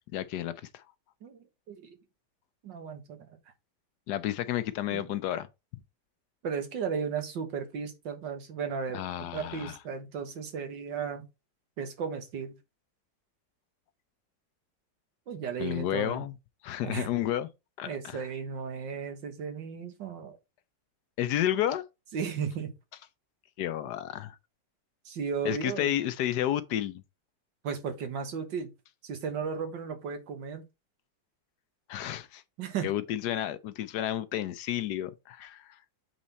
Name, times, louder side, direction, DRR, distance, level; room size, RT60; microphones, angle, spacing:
voice 1, 0.1-0.8 4.1-5.5 8.9-9.8 15.6-16.3 16.6-17.5 17.8-18.2 21.2-21.8 23.6-24.4 25.4-27.0 31.9-32.4 32.8-35.8, left 12 dB, 70° left, 1.1 m, -31 dB
voice 2, 2.6-3.4 4.9-5.1 6.4-11.3 11.8-12.6 15.3-16.3 16.8-17.1 17.9-20.4 22.1-22.7 25.1-25.9 27.6-28.7 29.0-30.6 32.6-32.9, right 6 dB, 85° right, 2.0 m, -35 dB
7.5 x 4.1 x 4.1 m
omnidirectional pair, 2.0 m